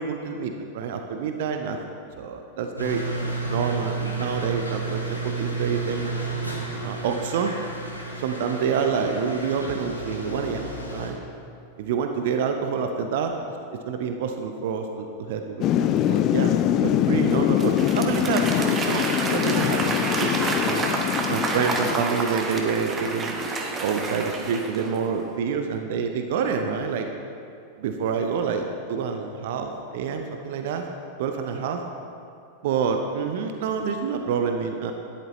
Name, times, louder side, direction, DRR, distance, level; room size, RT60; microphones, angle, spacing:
voice 1, 0.0-1.8 2.2-3.0 3.5-6.2 6.8-7.5 8.2-10.6 10.9-11.2 11.8-13.3 13.8-16.5 16.8-20.8 21.3-23.4 23.8-27.1 27.8-30.8 31.2-31.8 32.6-34.9, right 6 dB, 55° right, 5 dB, 0.7 m, -27 dB
sound 1, 2.8-11.1, right 3 dB, 85° left, 1.5 m, -31 dB
Thunder / Rain, 15.6-22.0, left 11 dB, 35° left, 0.4 m, -23 dB
Applause / Crowd, 17.3-25.1, right 3 dB, 20° right, 1.2 m, -29 dB
12.5 x 10.5 x 3.1 m, 2.5 s
figure-of-eight pair, 90°, 0 cm